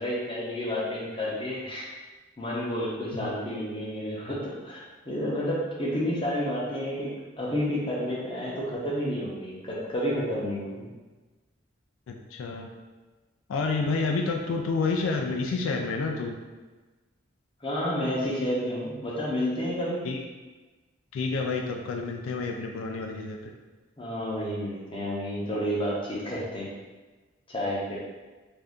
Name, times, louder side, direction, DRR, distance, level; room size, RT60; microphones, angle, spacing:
voice 1, 0.0-1.9 2.4-10.9 17.6-20.0 24.0-26.7 27.5-28.0, equal, 25° left, -5 dB, 0.6 m, -30 dB
voice 2, 12.1-12.7 13.5-16.4 20.0-20.2 21.1-23.5, left 4 dB, 80° left, 2 dB, 0.3 m, -29 dB
2.6 x 2.3 x 3.4 m, 1.2 s
head